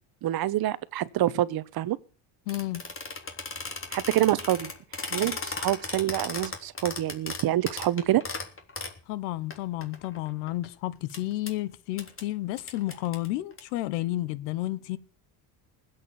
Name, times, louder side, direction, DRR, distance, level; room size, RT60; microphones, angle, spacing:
voice 1, 0.2-2.0 3.9-4.7 5.1-8.2, right 14 dB, 50° right, 1.1 m, -26 dB
voice 2, 2.5-2.8 9.1-15.0, left 16 dB, 85° left, 1.3 m, -31 dB
sound 1, 2.5-9.0 9.5-9.6 9.8-10.7 11.1-11.2 11.5-11.6 12.0-12.2 12.6-13.6, left 4 dB, 25° left, 3.4 m, -36 dB
19.5 x 8.6 x 7.0 m
supercardioid pair, 100°, 46 cm